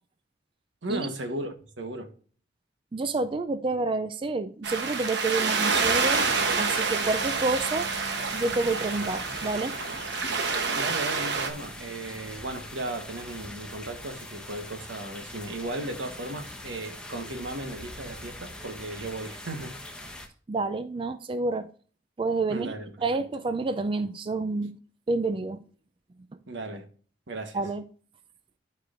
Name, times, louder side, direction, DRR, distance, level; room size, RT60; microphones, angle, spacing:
voice 1, 0.8-2.1 10.7-19.8 22.5-23.2 26.5-26.9 27.3-27.6, right 2 dB, 85° right, 1.2 m, -36 dB
voice 2, 2.9-6.3 6.6-7.9 8.3-9.8 20.5-21.7 22.2-22.7 23.0-24.8 25.1-25.6 27.5-27.8, right 3 dB, 30° right, 0.4 m, -28 dB
sound 1, 4.6-11.5, right 4 dB, 70° right, 1.0 m, -28 dB
sound 2, 5.7-20.3, left 1 dB, 5° left, 1.0 m, -42 dB
11.5 x 4.7 x 2.5 m
head